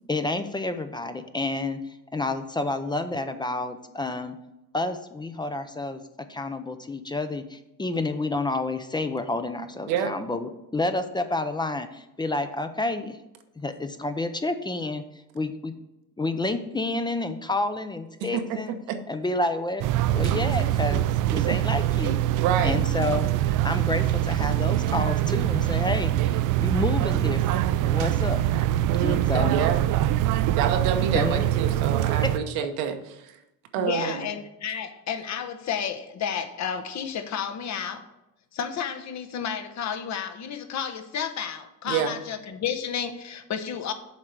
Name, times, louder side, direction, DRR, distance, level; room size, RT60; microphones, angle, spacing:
voice 1, 0.1-1.8 2.1-4.4 4.7-6.0 6.3-13.2 13.6-15.0 15.3-15.7 16.2-18.7 19.1-19.8 20.1-22.2 22.6-23.3 23.6-28.4 29.0-29.6 31.1-31.4 32.2-32.3, left 2 dB, 10° left, 9 dB, 0.5 m, -29 dB
voice 2, 18.3-19.0 22.4-22.8 28.9-29.8 30.6-33.4 33.7-34.3 41.9-42.1, right 8 dB, 85° right, 7 dB, 1.1 m, -28 dB
sound 1, 19.8-32.4, right 13 dB, 60° right, 0.5 m, -24 dB
voice 3, 33.8-38.1 38.5-43.9, left 7 dB, 50° left, 8 dB, 1.0 m, -31 dB
7.4 x 4.5 x 6.5 m, 0.92 s
cardioid pair, 110°, 36 cm